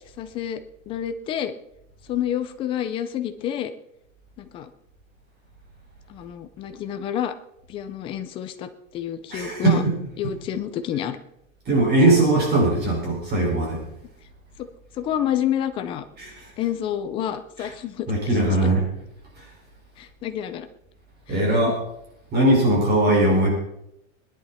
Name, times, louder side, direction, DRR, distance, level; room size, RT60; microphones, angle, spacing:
voice 1, 0.2-0.6 0.9-1.5 2.1-3.7 4.4-4.7 6.1-7.3 7.7-9.8 10.2-11.2 14.6-14.7 15.0-16.0 16.6-18.1 18.6-18.7 20.0-20.7 21.3-21.7, left 10 dB, 15° left, 9 dB, 0.4 m, -29 dB
voice 2, 9.3-10.0 11.7-13.8 16.2-16.5 17.6-17.7 18.1-18.8 19.4-19.5 21.3-21.8 22.3-23.5, right 1 dB, 25° right, -2 dB, 5.3 m, -20 dB
21.0 x 10.5 x 4.2 m, 0.78 s
supercardioid pair, 165°, 41 cm